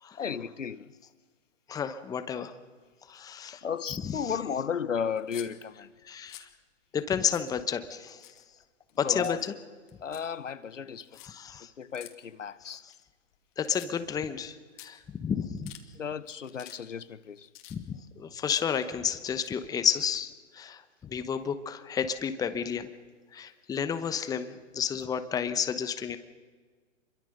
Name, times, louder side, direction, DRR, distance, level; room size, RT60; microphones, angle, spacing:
voice 1, 0.2-0.9 3.6-5.9 9.0-9.4 10.0-11.1 11.8-12.8 16.0-17.5, left 7 dB, 85° left, 1.2 m, -34 dB
voice 2, 1.7-2.5 3.1-3.6 4.0-4.4 6.0-6.5 6.9-8.2 9.0-9.5 11.2-11.7 12.7-12.9 13.6-15.7 17.7-22.9 23.3-26.2, left 7 dB, 10° left, 1.0 m, -31 dB
sound 1, 5.2-5.5 6.0-6.5 7.0-7.1 7.3-7.5 8.1-8.6 8.9-9.5 9.9-10.3 11.0-11.3 11.9-12.1 12.8-13.4 13.6-14.1 14.5-14.6 14.8-14.9 15.4-15.9 16.3-16.8 17.0-18.1 18.4-18.7 19.3-20.2, left 15 dB, 40° left, 2.7 m, -49 dB
26.5 x 23.0 x 6.6 m
hypercardioid pair, 135°, 37 cm